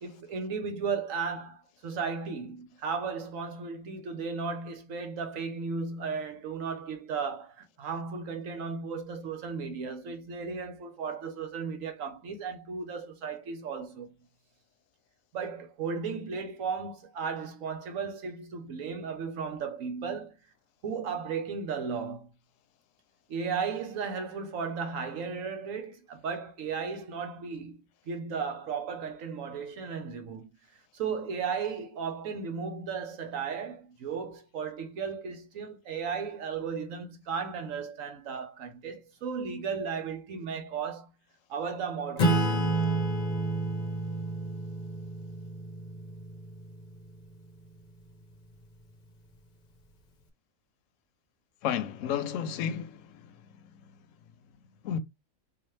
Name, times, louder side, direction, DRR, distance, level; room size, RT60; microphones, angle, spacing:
voice 1, 0.0-14.1 15.3-20.3 20.8-22.3 23.3-27.8 28.1-30.5 30.9-41.1 41.5-42.7, right 5 dB, 75° right, 1.2 m, -35 dB
Acoustic guitar / Strum, 42.2-47.2, right 2 dB, 45° left, 0.7 m, -30 dB
voice 2, 51.6-53.1 54.8-55.0, left 8 dB, 75° left, 0.9 m, -31 dB
4.0 x 2.5 x 3.1 m
omnidirectional pair, 1.4 m